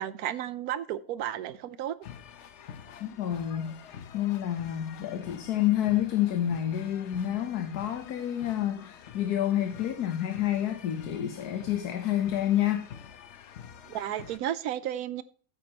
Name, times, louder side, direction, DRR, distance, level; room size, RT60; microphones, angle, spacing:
voice 1, 0.0-1.9 13.9-15.2, right 11 dB, 75° right, 1.1 m, -33 dB
sound 1, 2.0-14.4, left 8 dB, 60° left, 0.9 m, -48 dB
voice 2, 3.0-3.8 4.1-12.9, left 11 dB, 80° left, 1.4 m, -29 dB
13.5 x 8.5 x 2.9 m
omnidirectional pair, 1.6 m